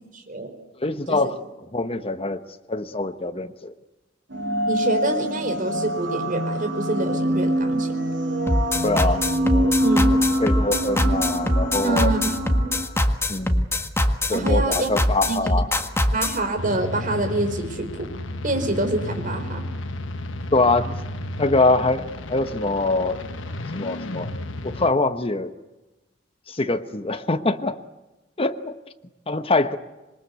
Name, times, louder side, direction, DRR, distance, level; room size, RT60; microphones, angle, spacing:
voice 1, 0.1-0.5 1.1-1.2 4.6-8.0 9.8-10.1 11.8-12.6 14.3-14.9 15.3-15.5 16.1-18.1 18.4-19.7, right 2 dB, 45° right, 6 dB, 4.5 m, -26 dB
voice 2, 0.8-1.4 1.7-2.4 2.7-3.7 8.8-9.7 10.1-12.1 13.3-13.7 14.3-15.7 20.5-21.0 21.4-23.2 23.7-24.3 24.6-25.5 26.5-27.8 28.4-28.8 29.3-29.8, left 2 dB, 30° left, 8 dB, 1.1 m, -24 dB
sound 1, 4.3-12.8, equal, 70° right, 7.6 m, -25 dB
sound 2, 8.5-16.4, left 1 dB, 15° left, 1.7 m, -22 dB
sound 3, 16.6-24.9, left 1 dB, 90° left, 1.3 m, -33 dB
26.5 x 22.5 x 8.2 m, 1.1 s
head